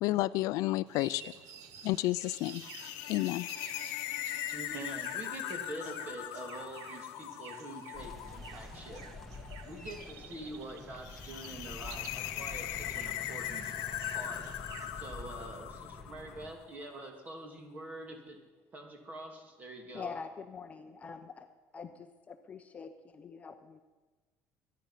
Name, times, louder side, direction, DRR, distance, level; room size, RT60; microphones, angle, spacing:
voice 1, 0.0-1.3 1.8-2.6 3.1-3.5, left 17 dB, 65° left, 17 dB, 0.4 m, -30 dB
sound 1, 0.9-15.1, right 8 dB, 70° right, 1.1 m, -52 dB
sound 2, 2.3-16.6, left 14 dB, 85° left, 0.9 m, -41 dB
voice 2, 4.5-9.1 9.7-13.7 14.1-14.5 14.9-18.4 18.7-20.1, right 1 dB, 30° right, 4 dB, 2.4 m, -45 dB
sound 3, 7.9-16.5, left 1 dB, 5° left, 1.6 m, -47 dB
voice 3, 19.9-21.5 21.7-23.8, left 5 dB, 25° left, 7 dB, 0.8 m, -45 dB
23.0 x 10.5 x 5.7 m, 1.3 s
cardioid pair, 150°, 6 cm